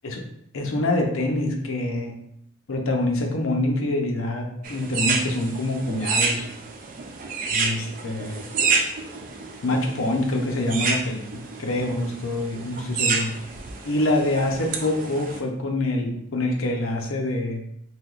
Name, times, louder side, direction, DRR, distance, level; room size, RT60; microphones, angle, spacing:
voice 1, 0.5-2.1 2.7-6.4 7.5-8.5 9.6-13.3 13.8-17.6, left 1 dB, 85° left, 1 dB, 0.6 m, -25 dB
sound 1, 4.6-15.4, right 4 dB, 40° right, 0.3 m, -29 dB
3.4 x 2.7 x 2.4 m, 0.75 s
head